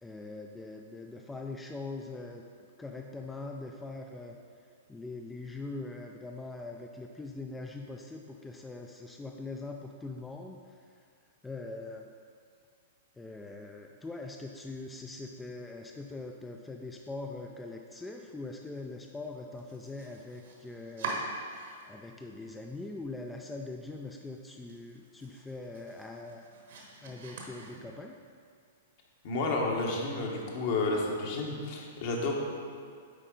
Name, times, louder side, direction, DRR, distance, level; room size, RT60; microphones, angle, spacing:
voice 1, 0.0-2.5 2.8-4.4 4.9-10.8 11.4-12.1 13.2-21.2 21.9-26.4 27.0-28.1, left 3 dB, 10° left, 2 dB, 0.4 m, -42 dB
Domestic sounds home sounds, 19.5-22.1 22.4-23.2 23.5-23.6 24.0-24.1 24.5-28.2, right 3 dB, 70° right, 1.4 m, -43 dB
voice 2, 29.2-32.3, left 2 dB, 55° left, -1 dB, 1.4 m, -31 dB
8.2 x 4.5 x 3.8 m, 2.2 s
hypercardioid pair, 120°, 0 cm